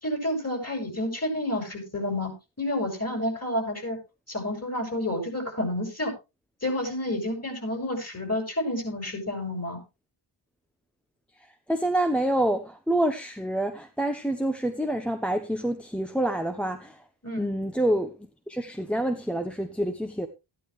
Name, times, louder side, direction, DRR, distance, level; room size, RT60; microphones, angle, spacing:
voice 1, 0.0-4.0 4.3-6.1 6.6-9.8 17.2-17.4, left 1 dB, 30° left, 5.5 m, -30 dB
voice 2, 11.7-17.0 17.4-18.1 18.5-20.3, right 1 dB, ahead, 1.0 m, -27 dB
13.5 x 11.5 x 3.2 m
wide cardioid pair, 90°, 49 cm